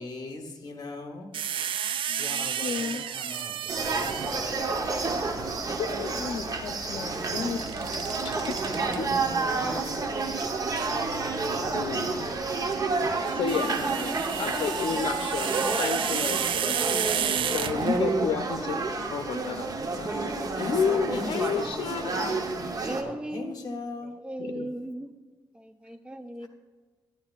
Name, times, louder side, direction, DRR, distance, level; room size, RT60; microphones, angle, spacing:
voice 1, 0.0-1.4 2.2-4.6 5.3-5.5 6.0-6.5 8.6-9.9 17.3-17.8 20.5-21.9 23.0-24.1 26.4-26.5, left 3 dB, 45° left, 3 dB, 1.1 m, -40 dB
sound 1, 1.3-4.6 7.5-9.0 10.7-11.0 13.0-18.2, right 9 dB, 65° right, 0.3 m, -32 dB
voice 2, 2.1-3.0 5.8-7.6 8.2-8.6 9.0-10.0 11.7-12.3 13.3-16.8 17.5-18.8 19.1-19.7 20.0-22.5 24.4-24.7, left 6 dB, 80° left, 5 dB, 0.6 m, -32 dB
sound 2, 3.7-23.0, right 3 dB, 40° right, 0.9 m, -30 dB
voice 3, 22.8-23.5 24.0-25.1 25.5-26.5, right 1 dB, 10° right, 8 dB, 0.6 m, -37 dB
11.5 x 10.0 x 2.4 m, 1.3 s
cardioid pair, 115°, 9 cm